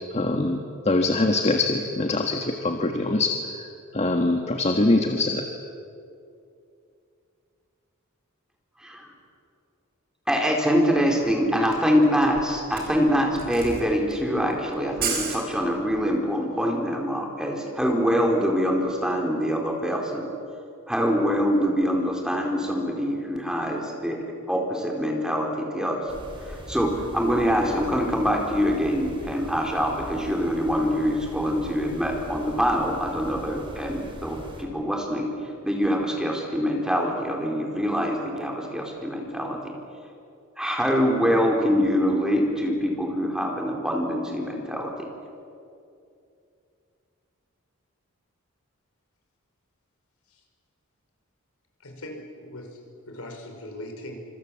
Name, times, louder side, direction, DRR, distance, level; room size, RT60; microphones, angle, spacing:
voice 1, 0.1-3.3 3.9-5.4, left 2 dB, 30° left, 4 dB, 1.5 m, -23 dB
voice 2, 10.3-20.2 20.9-24.2 24.5-26.0 26.4-35.3 35.6-39.7 40.6-44.9, equal, 5° right, 0 dB, 4.2 m, -24 dB
Camera, 11.2-11.3 11.6-16.1, right 6 dB, 45° right, 5.2 m, -34 dB
sound 1, 26.1-34.6, equal, 25° right, 4.5 m, -41 dB
voice 3, 51.8-54.2, left 1 dB, 80° left, 3 dB, 5.4 m, -40 dB
26.5 x 26.0 x 7.6 m, 2.5 s
head